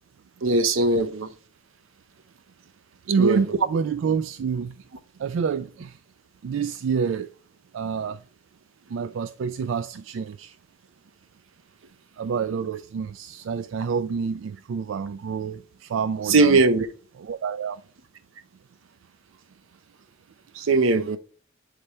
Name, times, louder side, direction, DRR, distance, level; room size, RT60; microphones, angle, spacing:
voice 1, 0.4-1.3 3.2-3.4 16.3-16.9 20.6-21.2, right 3 dB, 85° right, 0.7 m, -19 dB
voice 2, 3.1-4.8 5.2-6.0 6.4-7.3 7.7-8.2 8.9-10.6 12.2-16.6 17.2-17.8, right 6 dB, 70° right, 0.3 m, -28 dB
7.7 x 3.3 x 4.2 m
head